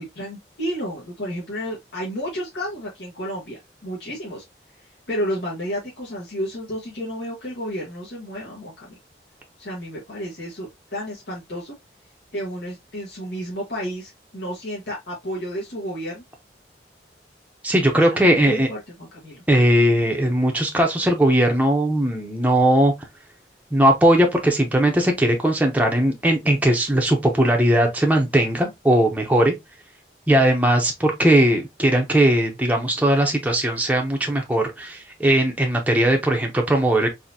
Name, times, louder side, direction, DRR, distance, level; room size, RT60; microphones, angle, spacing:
voice 1, 0.0-4.4 5.1-9.0 9.6-11.7 12.3-16.2 18.1-19.4, equal, 80° left, 1.4 m, -31 dB
voice 2, 17.6-18.7 19.5-22.9 23.7-29.5 30.3-37.1, right 1 dB, 10° right, 0.7 m, -19 dB
4.1 x 2.7 x 2.6 m
head